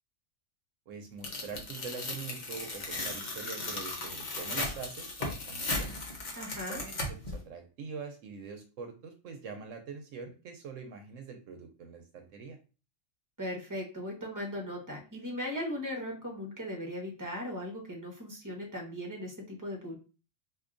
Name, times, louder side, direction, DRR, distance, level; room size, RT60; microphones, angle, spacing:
voice 1, 0.9-6.0 6.7-12.6, right 5 dB, 75° right, 5 dB, 1.0 m, -44 dB
Tearing, 1.2-7.4, left 2 dB, 40° left, 0.8 m, -36 dB
voice 2, 6.4-6.8 13.4-19.9, left 1 dB, 15° right, -1 dB, 0.9 m, -38 dB
4.4 x 2.6 x 2.5 m, 0.34 s
omnidirectional pair, 1.3 m